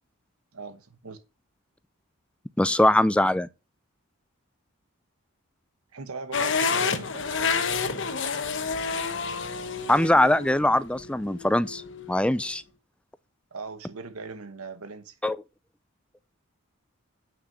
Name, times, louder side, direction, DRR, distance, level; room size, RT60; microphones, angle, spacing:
voice 1, 0.5-1.2 5.9-7.8 13.5-15.1, right 4 dB, 85° right, 1.1 m, -40 dB
voice 2, 2.6-3.5 9.9-11.8 12.1-12.6 15.2-15.4, left 1 dB, 5° left, 0.4 m, -22 dB
sound 1, 6.3-12.4, left 5 dB, 55° left, 1.1 m, -29 dB
8.4 x 6.4 x 4.7 m
head